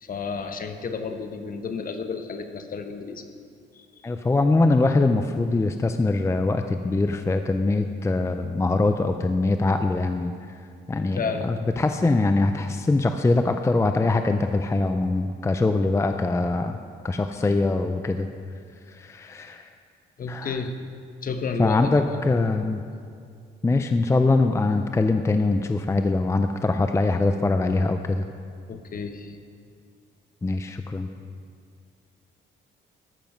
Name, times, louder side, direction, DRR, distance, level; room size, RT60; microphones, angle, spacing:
voice 1, 0.0-3.3 3.7-3.9 11.2-11.5 20.2-20.7 21.2-22.3 28.7-29.4, left 5 dB, 45° left, 7 dB, 1.0 m, -31 dB
voice 2, 4.0-10.3 10.9-16.8 17.0-18.3 18.9-19.7 20.3-20.6 21.6-22.8 23.6-28.3 30.4-31.1, left 2 dB, 15° left, 7 dB, 0.5 m, -23 dB
13.5 x 6.9 x 5.3 m, 2.3 s
cardioid pair, 90°, 20 cm